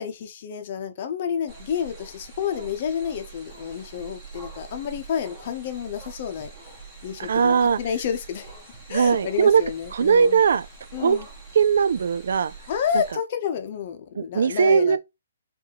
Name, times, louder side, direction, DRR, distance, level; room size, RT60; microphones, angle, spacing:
voice 1, 0.0-6.5 7.0-8.5 8.9-10.4 10.9-11.3 12.7-15.0, left 8 dB, 35° left, 0.8 m, -30 dB
sound 1, 1.5-13.1, right 4 dB, 15° right, 1.2 m, -44 dB
voice 2, 7.2-7.8 8.9-9.6 9.9-10.7 11.0-11.2 11.5-12.5 14.2-15.0, right 6 dB, 60° right, 0.3 m, -19 dB
4.8 x 2.6 x 2.9 m
hypercardioid pair, 170°, 0 cm